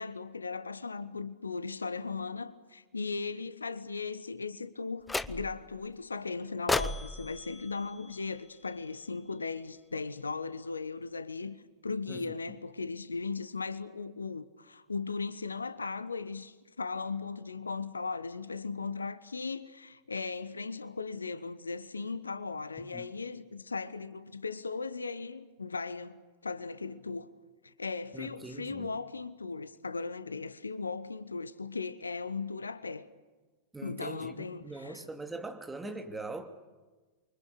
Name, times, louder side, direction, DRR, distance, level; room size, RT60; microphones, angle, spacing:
voice 1, 0.0-11.6 11.8-27.3 27.6-33.1 33.8-35.0, left 4 dB, 75° left, 1.1 m, -37 dB
sound 1, 5.1-5.7 6.7-8.9, left 2 dB, 10° left, 0.8 m, -35 dB
voice 2, 22.8-23.1 28.1-28.9 33.7-36.5, right 2 dB, 10° right, 2.8 m, -42 dB
28.5 x 24.5 x 6.9 m
figure-of-eight pair, 90°, 0 cm